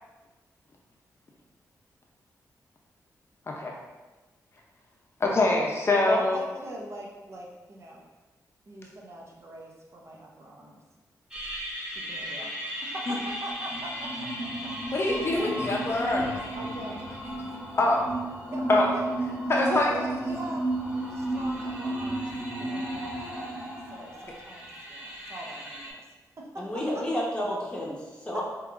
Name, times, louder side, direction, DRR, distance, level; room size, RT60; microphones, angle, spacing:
voice 1, 3.5-3.8 5.2-6.4 13.1-13.2 14.9-16.4 17.8-18.1 18.7-18.9 19.5-20.0, left 2 dB, 40° left, -1 dB, 0.6 m, -24 dB
voice 2, 5.9-8.1 8.7-10.8 11.9-14.7 15.2-15.6 16.5-17.0 17.9-18.0 18.4-18.7 18.9-19.0 19.5-20.7 21.1-22.3 22.6-26.1 26.4-27.0 28.3-28.4, right 1 dB, 45° right, -1 dB, 0.6 m, -42 dB
sound 1, 11.3-25.9, right 1 dB, 15° right, 1.1 m, -34 dB
voice 3, 26.6-28.4, left 1 dB, 15° left, -4 dB, 1.0 m, -31 dB
4.7 x 2.9 x 2.5 m, 1.2 s
cardioid pair, 85°, 7 cm